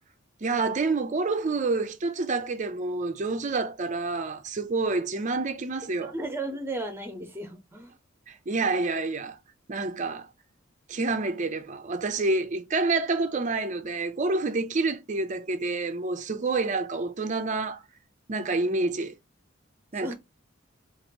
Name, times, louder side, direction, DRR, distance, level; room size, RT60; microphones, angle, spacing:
voice 1, 0.4-6.1 8.3-9.4 9.7-10.3 10.9-17.8 18.3-19.1 19.9-20.1, right 3 dB, 40° right, 0.5 m, -28 dB
voice 2, 6.0-7.9 20.0-20.1, right 2 dB, 10° right, 0.9 m, -34 dB
2.8 x 2.5 x 4.1 m
head